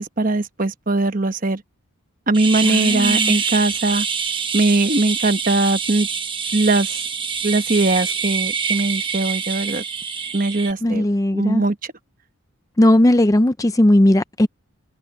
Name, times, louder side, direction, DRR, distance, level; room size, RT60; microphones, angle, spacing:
voice 1, 0.0-1.6 2.3-4.1 4.5-6.1 6.5-7.0 7.4-9.8 10.3-11.0 11.3-11.8, right 2 dB, 40° right, 1.1 m, -20 dB
sound 1, 2.3-10.7, right 6 dB, 20° right, 1.2 m, -25 dB
voice 2, 2.6-3.4 10.8-11.6 12.8-14.5, left 1 dB, 15° left, 0.5 m, -17 dB
head